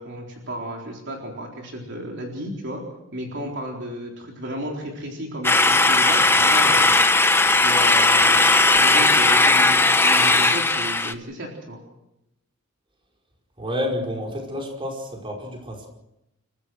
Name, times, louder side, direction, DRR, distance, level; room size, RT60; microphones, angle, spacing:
voice 1, 0.0-2.8 3.1-7.0 7.6-11.8, right 1 dB, 55° right, 0 dB, 4.1 m, -33 dB
sound 1, 5.4-11.1, left 2 dB, 10° left, 0.9 m, -17 dB
voice 2, 13.6-15.9, left 1 dB, 25° right, 0 dB, 5.1 m, -29 dB
29.0 x 15.0 x 6.5 m, 0.88 s
head